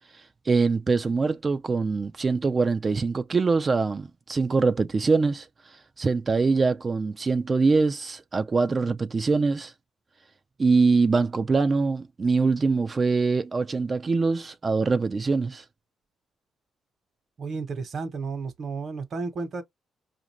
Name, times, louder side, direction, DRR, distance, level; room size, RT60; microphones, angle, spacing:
voice 1, 0.5-9.7 10.6-15.6, right 4 dB, 30° right, 0.4 m, -23 dB
voice 2, 17.4-19.6, right 4 dB, 55° right, 1.1 m, -32 dB
4.9 x 2.5 x 3.0 m
cardioid pair, 90°, 0 cm